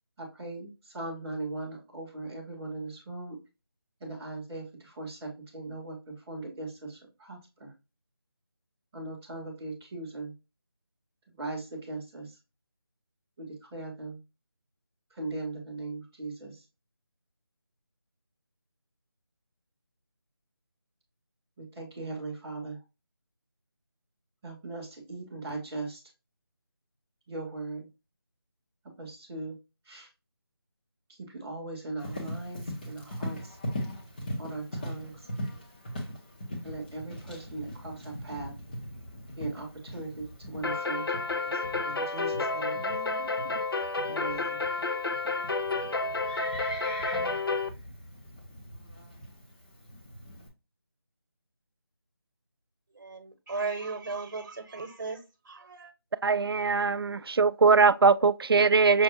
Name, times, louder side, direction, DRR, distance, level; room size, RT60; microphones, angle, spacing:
voice 1, 0.2-3.4 4.0-7.7 8.9-10.3 11.4-12.4 13.4-14.2 15.1-16.6 21.6-22.8 24.4-26.0 27.3-27.9 29.0-29.6 29.8-30.1 31.1-33.6 34.4-35.3 36.6-38.5 39.4-43.0 44.1-44.6, right 2 dB, 5° right, 0.5 m, -39 dB
Livestock farm animals working animals, 32.0-50.5, equal, 20° left, 0.8 m, -40 dB
sound 1, 40.6-47.7, left 3 dB, 65° left, 0.6 m, -30 dB
voice 2, 53.0-55.2 55.5-55.9, right 4 dB, 50° right, 1.1 m, -36 dB
voice 3, 56.2-59.0, right 4 dB, 70° right, 0.4 m, -21 dB
6.1 x 2.3 x 2.7 m
figure-of-eight pair, 170°, 13 cm